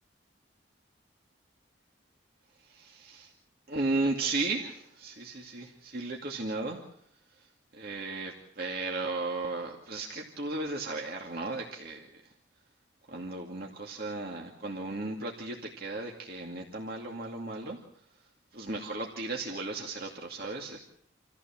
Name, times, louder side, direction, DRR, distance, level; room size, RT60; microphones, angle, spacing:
voice 1, 2.6-3.3 3.7-6.8 7.7-12.1 13.1-17.8 18.5-20.8, right 2 dB, 55° right, 0 dB, 2.4 m, -35 dB
28.0 x 15.0 x 7.3 m, 0.71 s
head